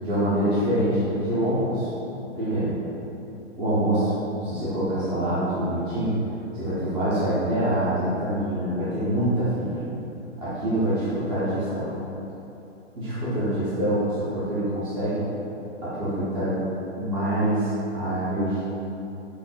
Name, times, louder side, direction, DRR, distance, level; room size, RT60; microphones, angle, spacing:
voice 1, 0.0-1.9 2.3-2.7 3.6-4.1 4.4-6.1 6.5-9.8 10.4-11.9 13.0-15.3 15.8-16.6 17.0-18.6, right 1 dB, 15° right, -11 dB, 0.7 m, -25 dB
7.1 x 2.6 x 2.3 m, 2.9 s
figure-of-eight pair, 125°, 37 cm